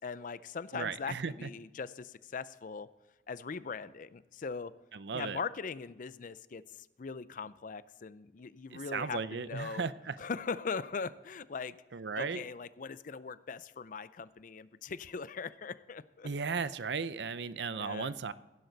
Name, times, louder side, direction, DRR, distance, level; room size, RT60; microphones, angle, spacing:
voice 1, 0.0-2.9 3.3-4.7 5.1-9.8 10.2-11.8 12.2-16.3 17.8-18.1, left 5 dB, 45° left, 16 dB, 0.5 m, -40 dB
voice 2, 0.7-1.5 4.9-5.4 8.7-10.2 11.9-12.4 16.2-18.3, right 5 dB, 70° right, 15 dB, 0.6 m, -36 dB
15.5 x 11.0 x 4.0 m, 1.0 s
head